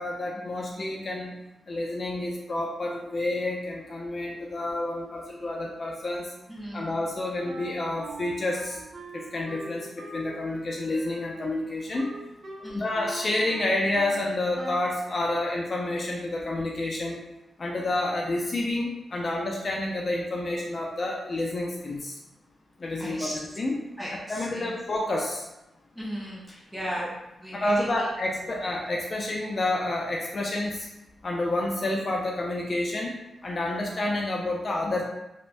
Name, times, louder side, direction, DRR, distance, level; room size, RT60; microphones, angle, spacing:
voice 1, 0.0-1.3 1.7-6.3 6.7-8.8 9.1-12.1 12.7-17.2 17.6-22.2 22.8-23.8 24.3-25.4 27.5-30.9 31.2-35.0, left 2 dB, 45° left, -2 dB, 0.4 m, -29 dB
voice 2, 6.5-6.9 12.6-12.9 23.0-23.4 24.0-24.8 25.9-28.1 28.4-28.8, equal, 5° right, -5 dB, 0.8 m, -36 dB
Wind instrument woodwind instrument, 7.4-14.2 14.5-15.0, right 2 dB, 55° right, 0.5 m, -42 dB
3.1 x 2.1 x 2.5 m, 0.93 s
cardioid pair, 60°, 0 cm